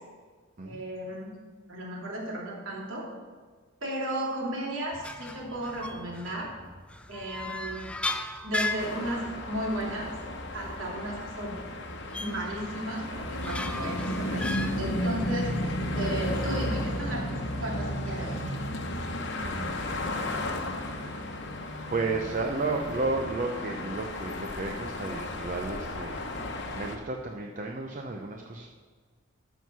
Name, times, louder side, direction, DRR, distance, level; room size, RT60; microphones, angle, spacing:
voice 1, 0.6-1.3 1.7-3.1 3.8-6.5 7.1-7.9 8.4-10.1 10.5-11.6 12.2-18.4, right 1 dB, 65° right, -3 dB, 2.8 m, -34 dB
sound 1, 4.9-15.9, left 2 dB, 5° left, 0.3 m, -38 dB
sound 2, 8.8-27.0, left 1 dB, 55° left, 1.0 m, -33 dB
voice 2, 19.4-20.5 21.2-21.5 21.9-26.3 26.6-28.7, right 3 dB, 40° right, 1 dB, 0.6 m, -33 dB
13.5 x 4.6 x 6.1 m, 1.5 s
head